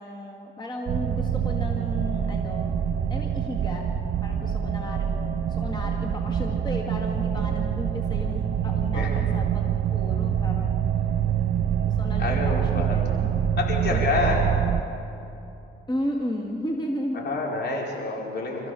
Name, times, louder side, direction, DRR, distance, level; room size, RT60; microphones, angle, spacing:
voice 1, 0.0-2.8 3.1-3.8 4.2-10.8 11.8-13.3 13.9-14.4 15.9-17.2, left 1 dB, 20° left, 0 dB, 2.1 m, -34 dB
sound 1, 0.9-14.8, right 8 dB, 60° right, 1.3 m, -25 dB
voice 2, 12.2-13.0 13.6-14.5 17.1-18.7, left 3 dB, 55° left, -2 dB, 5.1 m, -27 dB
27.5 x 15.0 x 7.0 m, 2.7 s
cardioid pair, 90°, 20 cm